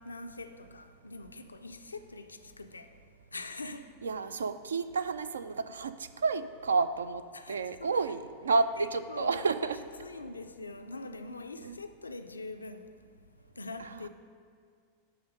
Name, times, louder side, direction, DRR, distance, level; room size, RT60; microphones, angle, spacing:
voice 1, 0.0-3.0 3.3-4.0 4.3-4.4 7.3-8.0 8.8-9.5 10.0-13.0 13.5-14.1, left 3 dB, 80° left, 0.4 m, -43 dB
voice 2, 4.0-5.9 6.2-7.2 7.5-9.8 11.6-11.8 13.8-14.1, right 4 dB, 70° right, 0.3 m, -30 dB
10.5 x 3.6 x 5.2 m
figure-of-eight pair, 90°, 0 cm